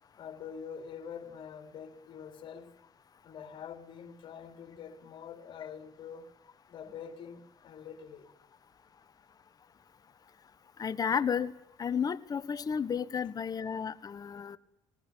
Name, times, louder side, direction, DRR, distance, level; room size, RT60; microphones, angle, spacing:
voice 1, 0.2-2.7 3.2-6.3 6.7-8.3, left 7 dB, 55° left, 4.2 m, -45 dB
voice 2, 10.8-11.5 11.8-14.6, left 7 dB, 40° left, 1.3 m, -32 dB
21.0 x 16.0 x 9.4 m
cardioid pair, 95°, 10 cm